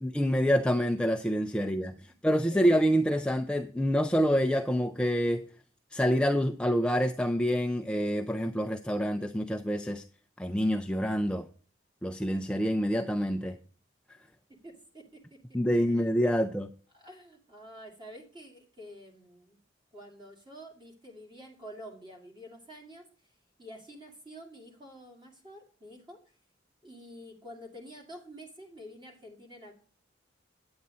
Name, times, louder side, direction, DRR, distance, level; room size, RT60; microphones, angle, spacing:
voice 1, 0.0-5.5 5.9-10.0 10.4-11.5 12.0-13.6 15.5-16.7, equal, 5° left, 0.4 m, -27 dB
voice 2, 2.5-2.8 14.6-15.4 15.9-16.1 16.9-19.6 19.9-23.1 23.6-26.2 26.8-29.7, equal, 25° right, 2.4 m, -48 dB
9.5 x 8.7 x 4.1 m
head